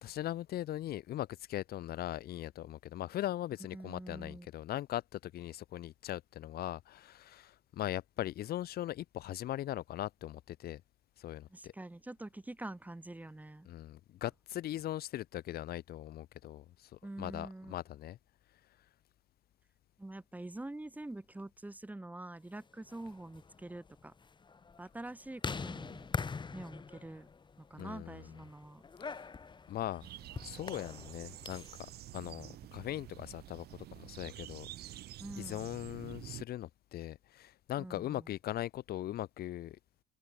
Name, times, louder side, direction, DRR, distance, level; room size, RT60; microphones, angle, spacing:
voice 1, 0.0-10.8 11.2-11.7 13.7-18.2 27.8-28.3 29.1-29.3 29.7-30.0 30.4-31.6 32.1-34.9 35.4-39.8, left 13 dB, 65° left, 2.0 m, -40 dB
voice 2, 3.7-4.5 11.5-13.7 17.0-17.7 20.0-24.1 24.8-26.1 26.5-27.3 27.6-28.8 35.2-35.7 37.8-38.3, right 2 dB, 10° right, 2.4 m, -46 dB
sound 1, 22.7-31.8, left 5 dB, 25° left, 3.5 m, -44 dB
sound 2, 30.0-36.5, right 14 dB, 70° right, 2.7 m, -49 dB
cardioid pair, 110°, 17 cm